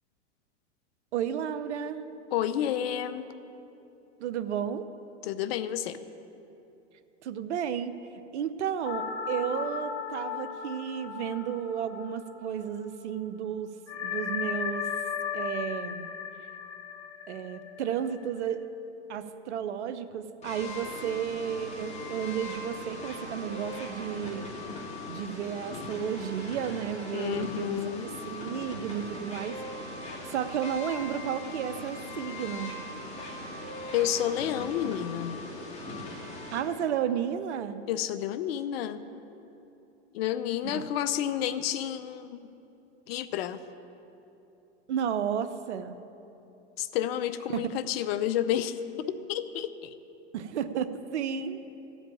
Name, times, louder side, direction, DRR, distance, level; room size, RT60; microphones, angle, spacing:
voice 1, 1.1-2.1 4.2-4.9 7.2-7.9 8.3-13.7 14.0-14.9 15.3-16.1 17.3-18.6 19.1-24.5 25.1-29.6 30.3-32.8 36.5-37.8 40.6-40.8 44.9-46.0 47.5-47.7 50.3-51.6, right 8 dB, 75° right, 11 dB, 0.8 m, -32 dB
voice 2, 2.3-3.3 5.2-6.0 27.1-28.1 33.9-35.3 37.9-39.0 40.1-42.4 43.1-43.6 46.8-48.8 49.1-49.9, left 11 dB, 60° left, 13 dB, 0.7 m, -30 dB
sound 1, 8.8-12.9 13.1-13.2 13.9-18.5, left 7 dB, 75° left, 1.2 m, -36 dB
sound 2, 20.4-36.6, left 2 dB, 20° left, 2.3 m, -40 dB
14.5 x 5.2 x 8.5 m, 2.9 s
hypercardioid pair, 115°, 35 cm